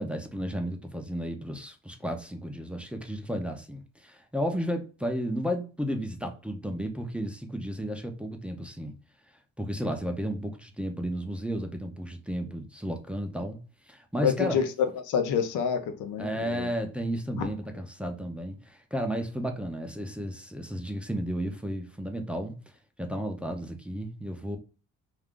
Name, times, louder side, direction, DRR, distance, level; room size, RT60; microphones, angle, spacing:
voice 1, 0.0-8.9 9.6-13.6 13.9-14.6 16.2-22.5 23.0-24.6, equal, 5° right, 0.5 m, -33 dB
voice 2, 14.2-16.7 17.4-17.5, left 7 dB, 85° left, 0.6 m, -28 dB
2.4 x 2.4 x 3.5 m
cardioid pair, 90°, 30 cm